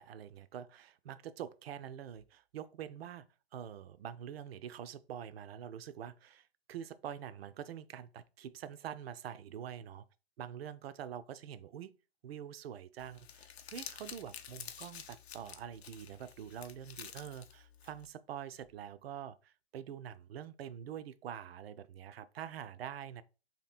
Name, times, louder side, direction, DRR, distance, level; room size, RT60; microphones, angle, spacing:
voice 1, 0.0-3.3 3.5-10.0 10.4-11.9 12.2-23.2, right 9 dB, 65° right, 0.5 m, -45 dB
Crumpling crinkling, 13.0-18.1, left 8 dB, 70° left, 0.6 m, -50 dB
2.8 x 2.7 x 4.1 m
figure-of-eight pair, 120°, 33 cm